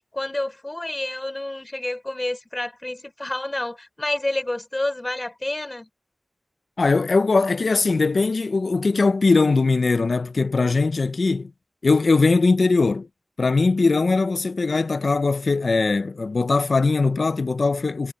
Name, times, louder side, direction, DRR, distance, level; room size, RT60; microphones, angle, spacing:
voice 1, 0.1-5.9, left 1 dB, 30° left, 3.9 m, -29 dB
voice 2, 6.8-11.5 11.8-13.1 13.4-18.1, left 3 dB, 85° left, 0.5 m, -20 dB
wide cardioid pair, 60°, 0 cm